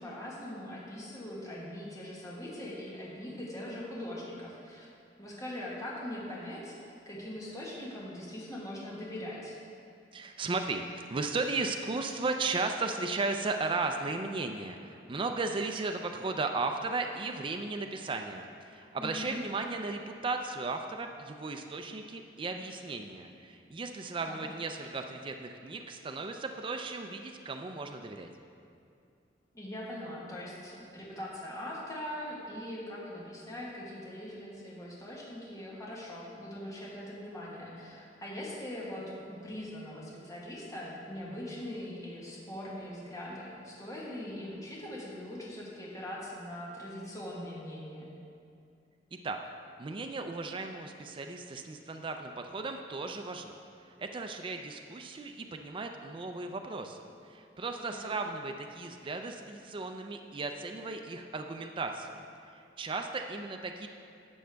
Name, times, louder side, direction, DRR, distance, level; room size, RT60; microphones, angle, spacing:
voice 1, 0.0-4.9 5.2-9.5 19.0-19.4 24.3-24.5 29.5-48.1 57.7-58.1, left 1 dB, 20° left, -6 dB, 1.5 m, -41 dB
voice 2, 10.1-28.3 49.2-49.4 49.8-62.2 62.5-63.9, right 3 dB, 30° right, 4 dB, 0.4 m, -35 dB
11.5 x 7.6 x 3.4 m, 2.5 s
head